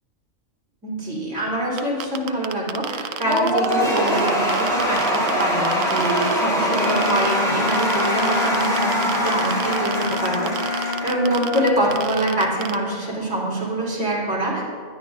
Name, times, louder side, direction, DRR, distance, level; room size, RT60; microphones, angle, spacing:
voice 1, 0.8-14.6, right 1 dB, 65° right, -6 dB, 4.1 m, -25 dB
sound 1, 1.8-6.3 6.7-7.3 7.7-12.8, right 10 dB, 80° right, 1.0 m, -30 dB
Cheering / Applause / Crowd, 3.3-11.9, equal, 5° left, 3.2 m, -23 dB
Wind instrument woodwind instrument, 6.8-11.7, left 4 dB, 25° left, 2.1 m, -28 dB
20.0 x 12.0 x 2.6 m, 2.2 s
omnidirectional pair, 1.3 m